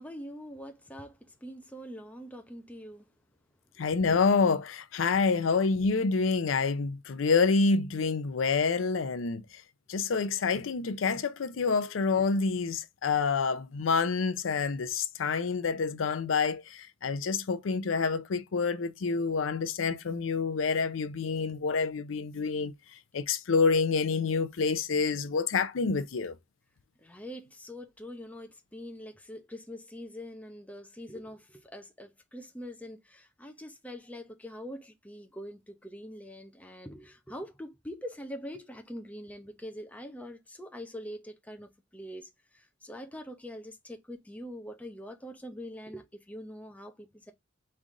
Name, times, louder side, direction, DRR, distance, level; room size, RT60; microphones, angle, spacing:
voice 1, 0.0-3.1 27.0-42.3 42.5-47.3, equal, 10° left, 0.7 m, -44 dB
voice 2, 3.8-9.6 9.9-26.4, left 4 dB, 80° left, 0.5 m, -28 dB
3.8 x 3.3 x 3.7 m
head